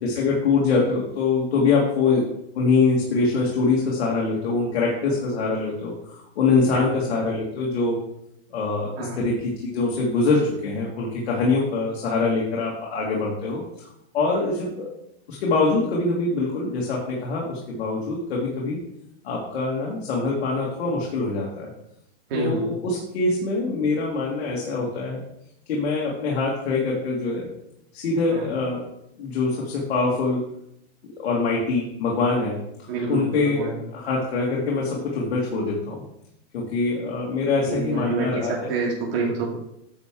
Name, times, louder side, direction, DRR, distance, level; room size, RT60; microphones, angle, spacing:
voice 1, 0.0-2.2 2.6-8.0 8.5-13.6 14.1-14.9 15.3-18.8 19.2-21.7 22.3-25.2 25.7-27.5 27.9-28.8 29.2-30.5 31.2-36.0 36.5-38.7, left 3 dB, 75° left, -3 dB, 2.1 m, -24 dB
voice 2, 6.7-7.0 9.0-9.2 22.3-22.7 28.3-28.5 32.9-33.7 37.7-39.5, right 4 dB, 60° right, -3 dB, 2.7 m, -28 dB
9.7 x 6.1 x 3.8 m, 0.79 s
supercardioid pair, 165°, 32 cm